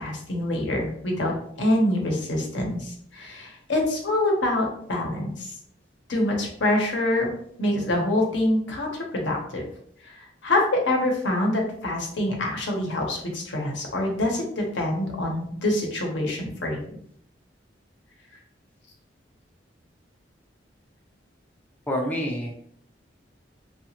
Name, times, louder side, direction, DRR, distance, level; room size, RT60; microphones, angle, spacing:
voice 1, 0.0-5.5 6.1-7.3 7.6-9.7 10.0-16.8, left 1 dB, 80° left, 0 dB, 0.8 m, -25 dB
voice 2, 21.9-22.5, equal, 10° left, -1 dB, 0.4 m, -27 dB
2.8 x 2.3 x 2.8 m, 0.66 s
head